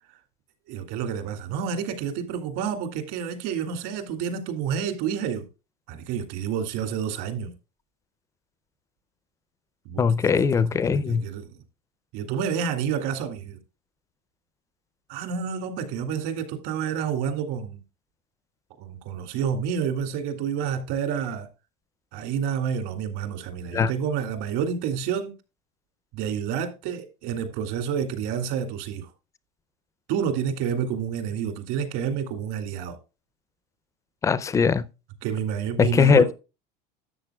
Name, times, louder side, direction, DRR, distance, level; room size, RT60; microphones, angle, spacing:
voice 1, 0.7-5.4 5.9-7.5 9.9-10.0 10.8-11.5 12.1-13.6 15.1-17.8 18.8-21.5 22.1-25.3 26.1-29.1 30.1-33.0 35.2-36.3, right 7 dB, 60° right, 2.2 m, -29 dB
voice 2, 10.0-11.2 23.7-23.9 34.2-34.9 35.8-36.3, left 6 dB, 15° left, 0.4 m, -20 dB
12.5 x 8.2 x 2.2 m
cardioid pair, 155°, 20 cm